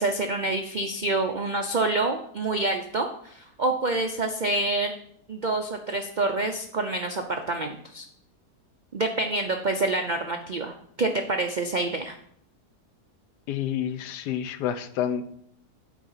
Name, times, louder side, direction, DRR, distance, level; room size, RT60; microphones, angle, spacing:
voice 1, 0.0-5.0 5.3-8.0 8.9-10.7 11.0-12.2, right 2 dB, 85° right, 4 dB, 0.4 m, -27 dB
voice 2, 13.5-15.3, left 9 dB, 90° left, 11 dB, 1.3 m, -29 dB
9.5 x 3.9 x 5.6 m, 0.68 s
omnidirectional pair, 1.7 m